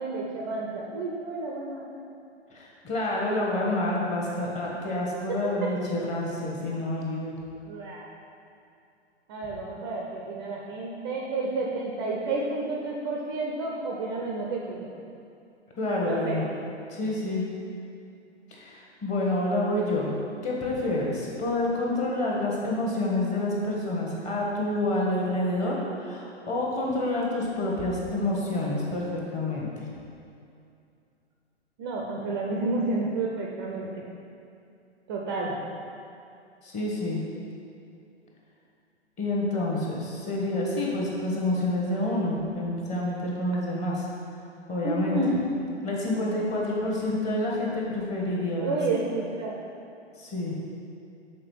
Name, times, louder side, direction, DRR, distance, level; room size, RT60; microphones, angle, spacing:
voice 1, 0.0-1.8 5.3-5.7 7.6-8.1 9.3-14.9 15.9-16.4 31.8-34.0 35.1-35.6 44.8-45.4 48.6-49.7, right 3 dB, 25° right, -2 dB, 0.4 m, -30 dB
voice 2, 2.5-7.3 15.8-16.4 16.9-17.4 18.5-20.2 20.4-29.7 36.6-37.2 39.2-44.1 44.7-45.2 45.8-48.8 50.2-50.6, left 1 dB, 20° left, -3 dB, 1.0 m, -28 dB
6.4 x 3.8 x 4.6 m, 2.6 s
figure-of-eight pair, 110°, 34 cm